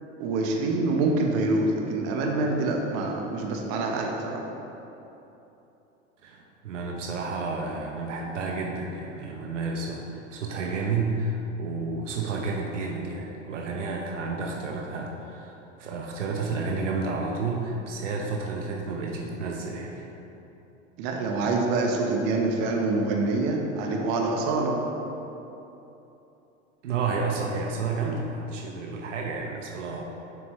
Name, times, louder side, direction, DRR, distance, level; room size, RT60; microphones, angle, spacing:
voice 1, 0.2-4.4 21.0-24.8, right 2 dB, 55° right, 1 dB, 1.0 m, -26 dB
voice 2, 6.2-20.0 26.8-30.0, right 3 dB, 85° right, 0 dB, 0.8 m, -31 dB
7.4 x 6.0 x 3.1 m, 3.0 s
hypercardioid pair, 95°, 36 cm